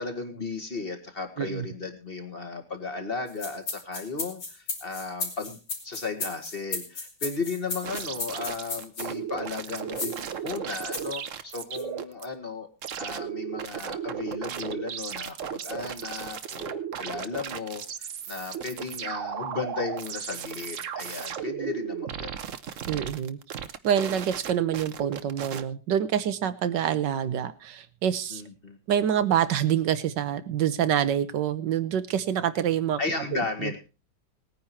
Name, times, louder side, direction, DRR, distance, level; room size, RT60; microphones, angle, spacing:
voice 1, 0.0-5.6 5.8-12.7 13.0-22.5 28.3-28.8 33.0-33.8, left 4 dB, 35° left, 5 dB, 2.0 m, -35 dB
sound 1, 3.3-9.1 9.9-10.3 10.9-11.2 11.7-11.8, left 3 dB, 85° left, 3.5 m, -34 dB
sound 2, 7.8-12.3 12.8-25.6, right 8 dB, 55° right, 1.1 m, -35 dB
voice 2, 22.9-23.4 23.8-28.4 28.9-33.0 33.3-33.7, right 9 dB, 80° right, 12 dB, 1.6 m, -26 dB
19.0 x 9.7 x 4.3 m, 0.31 s
omnidirectional pair, 1.9 m